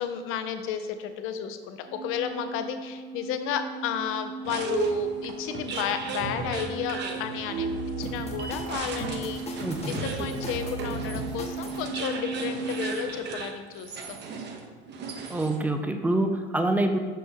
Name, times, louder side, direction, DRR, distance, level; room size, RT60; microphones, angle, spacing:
voice 1, 0.0-7.7 8.0-14.2, left 8 dB, 45° left, 8 dB, 0.6 m, -32 dB
sound 1, 1.9-13.1, right 5 dB, 75° right, 0.6 m, -35 dB
sound 2, 4.4-15.7, right 4 dB, 35° right, 0.8 m, -37 dB
sound 3, 8.0-11.8, equal, 20° left, 1.0 m, -38 dB
voice 2, 9.6-10.0 15.3-17.0, right 1 dB, 5° right, 5 dB, 0.4 m, -26 dB
6.1 x 4.5 x 3.5 m, 1.5 s
figure-of-eight pair, 70°, 30 cm